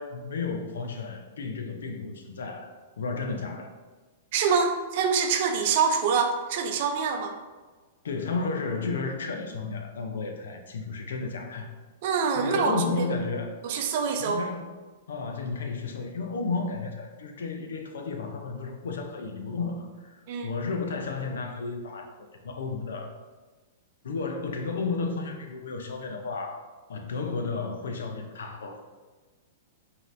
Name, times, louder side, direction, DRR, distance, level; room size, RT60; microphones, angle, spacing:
voice 1, 0.0-3.7 8.0-11.7 12.4-13.5 14.2-14.7 15.1-22.1 22.4-23.1 24.0-26.6 26.9-28.8, left 4 dB, 85° left, 4 dB, 0.6 m, -33 dB
voice 2, 4.3-7.4 12.0-13.1 13.6-14.4 20.3-20.5, right 5 dB, 55° right, 5 dB, 0.5 m, -25 dB
5.1 x 2.8 x 2.6 m, 1.3 s
hypercardioid pair, 135°, 0 cm